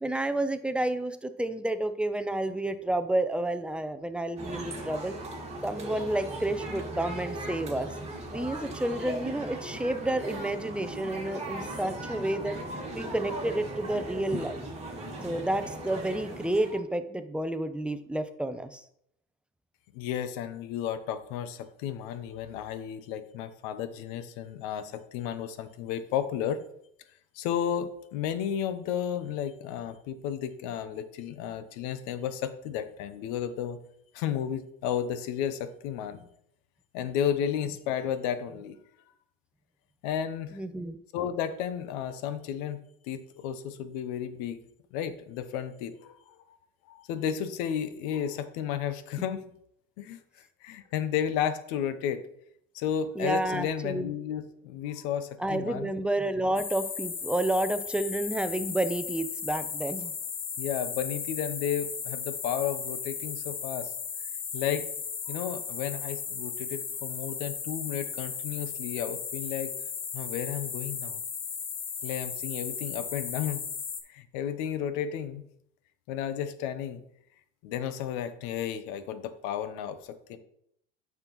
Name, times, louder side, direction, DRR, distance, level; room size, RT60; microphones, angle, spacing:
voice 1, 0.0-5.1 5.6-7.9 8.3-12.6 12.9-14.6 15.2-18.8 40.5-41.0 53.2-54.1 55.4-60.1, right 1 dB, 5° right, 10 dB, 0.6 m, -30 dB
sound 1, 4.4-16.8, right 1 dB, 20° right, 2.1 m, -38 dB
voice 2, 19.9-26.6 27.3-33.8 34.1-36.3 36.9-38.8 40.0-40.6 41.1-44.6 44.9-46.4 46.9-49.4 50.0-52.3 52.7-55.9 60.6-63.9 64.5-64.9 65.3-69.7 70.1-71.2 72.0-73.6 74.1-75.4 76.1-77.0 77.6-80.4, left 9 dB, 70° left, 12 dB, 0.9 m, -33 dB
sound 2, 56.6-74.0, left 6 dB, 40° left, 1.2 m, -36 dB
8.8 x 6.0 x 3.1 m, 0.72 s
supercardioid pair, 90°, 31 cm